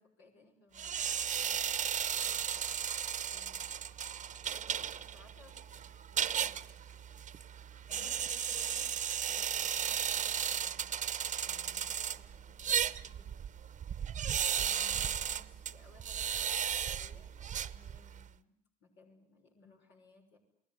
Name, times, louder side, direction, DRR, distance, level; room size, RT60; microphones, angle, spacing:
voice 1, 0.0-1.8 2.1-2.8 3.3-3.8 4.5-5.9 6.1-6.7 9.3-10.9 11.5-13.1 14.6-20.4, left 2 dB, 70° left, 2 dB, 6.2 m, -63 dB
sound 1, 0.8-18.3, right 8 dB, 40° right, 1.0 m, -35 dB
voice 2, 7.9-9.0 12.7-13.3 19.5-19.8, left 5 dB, 35° left, 7 dB, 5.6 m, -58 dB
29.5 x 20.0 x 9.6 m, 0.72 s
supercardioid pair, 80°, 19 cm